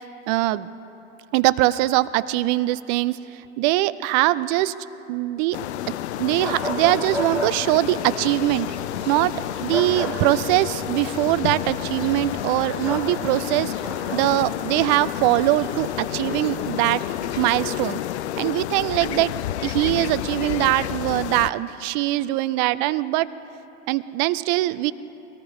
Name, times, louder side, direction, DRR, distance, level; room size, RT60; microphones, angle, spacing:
voice 1, 0.3-0.7 1.3-4.7 5.1-5.6 6.2-8.7 9.1-9.3 9.6-13.7 14.1-17.0 17.4-18.0 18.4-19.3 19.6-23.3 23.9-24.9, right 17 dB, 40° right, 17 dB, 0.5 m, -22 dB
sound 1, 5.5-21.5, left 14 dB, 60° left, 0.5 m, -30 dB
sound 2, 6.0-17.7, right 2 dB, 60° right, 3.5 m, -42 dB
sound 3, 6.4-7.5 9.7-10.1 12.8-13.1 13.8-14.2, left 2 dB, 5° right, 4.2 m, -30 dB
21.5 x 18.5 x 3.1 m, 3.0 s
hypercardioid pair, 95°, 38 cm